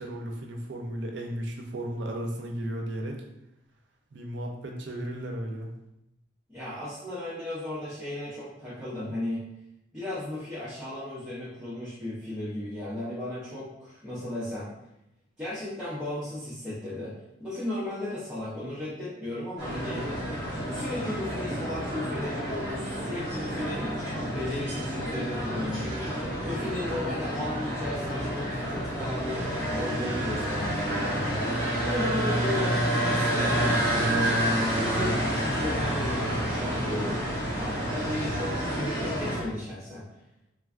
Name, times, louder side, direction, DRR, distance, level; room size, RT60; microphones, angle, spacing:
voice 1, 0.0-3.2 4.1-5.7, right 1 dB, 70° right, 1 dB, 0.5 m, -34 dB
voice 2, 6.5-9.4 9.9-14.7 15.4-17.1 17.4-20.1 20.5-26.0 26.4-34.4 34.8-37.2 37.6-40.1, left 1 dB, 5° right, -12 dB, 0.7 m, -35 dB
sound 1, 19.6-39.4, right 1 dB, 20° left, 1.1 m, -29 dB
3.2 x 2.3 x 2.4 m, 0.84 s
head